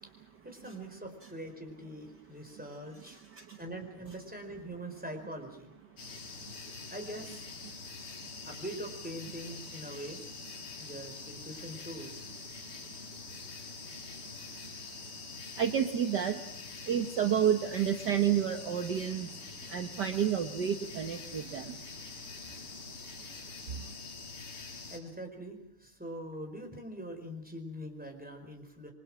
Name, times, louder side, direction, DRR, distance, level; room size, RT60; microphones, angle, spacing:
voice 1, 0.0-3.2 3.6-5.7 6.9-7.5 8.4-10.2 10.8-12.3 24.9-28.9, right 1 dB, 5° right, 4 dB, 4.7 m, -43 dB
voice 2, 3.1-3.6 15.6-16.5 16.8-21.8 23.7-23.8, right 9 dB, 55° right, 6 dB, 1.8 m, -30 dB
sound 1, 6.0-25.0, left 4 dB, 85° left, 5.9 m, -45 dB
29.0 x 24.0 x 6.2 m, 0.74 s
omnidirectional pair, 2.4 m